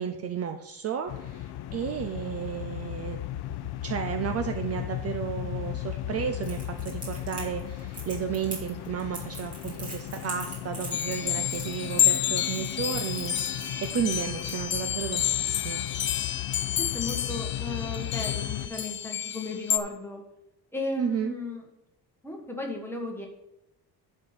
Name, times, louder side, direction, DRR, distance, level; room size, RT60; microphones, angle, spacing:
voice 1, 0.0-3.2 3.8-15.8 21.0-21.3, right 8 dB, 40° right, 6 dB, 0.5 m, -33 dB
sound 1, 1.1-18.7, left 12 dB, 70° left, 0.7 m, -36 dB
Crackle, 6.4-14.9, right 2 dB, 20° right, 2.7 m, -42 dB
sound 2, 10.9-19.8, left 10 dB, 30° left, 0.4 m, -29 dB
voice 2, 16.8-20.2 20.7-21.6 22.2-23.3, left 2 dB, 5° left, 1 dB, 1.3 m, -35 dB
11.0 x 4.4 x 6.7 m, 0.91 s
cardioid pair, 180°, 40 cm